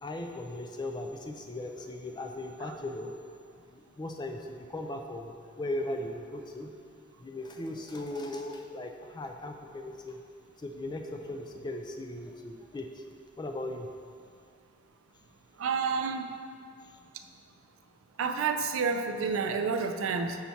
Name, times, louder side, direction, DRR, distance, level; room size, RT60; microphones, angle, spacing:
voice 1, 0.0-3.1 3.7-6.7 7.2-10.2 10.6-13.0 13.4-13.9, left 1 dB, 20° left, 4 dB, 0.3 m, -38 dB
voice 2, 15.6-16.2 18.2-20.4, right 5 dB, 65° right, 6 dB, 0.4 m, -29 dB
5.6 x 4.1 x 4.4 m, 2.2 s
head